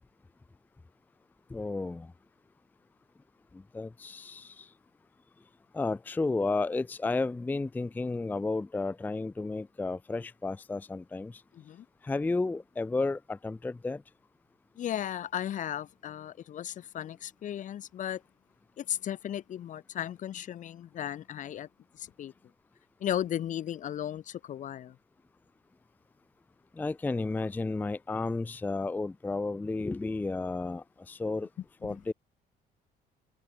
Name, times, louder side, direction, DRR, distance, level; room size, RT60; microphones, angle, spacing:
voice 1, 1.5-2.1 3.5-4.7 5.7-11.4 12.0-14.0 26.8-31.5 31.8-32.1, left 3 dB, 10° left, 0.4 m, -32 dB
voice 2, 11.5-11.8 14.8-18.2 18.8-21.7 21.9-22.3 23.0-25.0 31.8-32.0, left 10 dB, 50° left, 0.7 m, -35 dB
cardioid pair, 110°, 17 cm